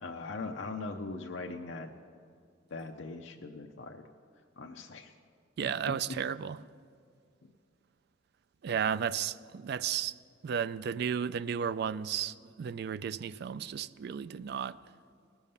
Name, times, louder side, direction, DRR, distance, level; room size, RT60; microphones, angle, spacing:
voice 1, 0.0-1.9 2.7-4.0 4.6-5.1 7.4-7.5, left 3 dB, 70° left, 2 dB, 0.6 m, -40 dB
voice 2, 5.6-6.6 8.6-10.1 10.4-14.8, right 8 dB, 55° right, 16 dB, 0.3 m, -33 dB
19.0 x 7.1 x 5.5 m, 2.2 s
head